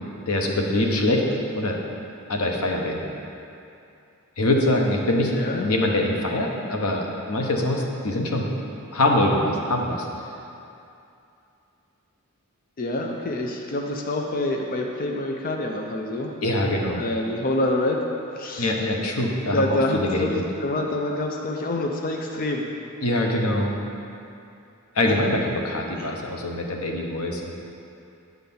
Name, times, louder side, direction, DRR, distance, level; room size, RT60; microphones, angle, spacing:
voice 1, 0.3-1.2 1.6-1.8 2.3-3.0 4.4-8.5 8.9-10.1 16.4-17.0 18.6-20.4 23.0-23.7 24.9-27.5, left 1 dB, 90° left, 1 dB, 1.0 m, -23 dB
voice 2, 5.3-5.7 12.8-16.3 17.0-18.0 18.3-18.7 19.5-22.7 25.1-25.2 26.0-26.1, left 1 dB, 40° left, 1 dB, 0.6 m, -27 dB
9.5 x 3.9 x 6.9 m, 2.7 s
head